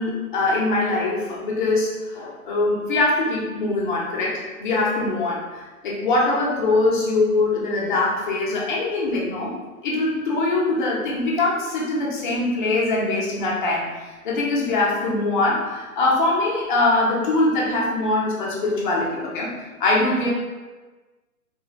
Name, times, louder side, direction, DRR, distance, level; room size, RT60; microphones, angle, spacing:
voice 1, 0.0-9.6 9.8-19.5 19.8-20.3, left 2 dB, 35° left, -4 dB, 1.1 m, -22 dB
4.3 x 4.0 x 2.6 m, 1.3 s
figure-of-eight pair, 125°, 44 cm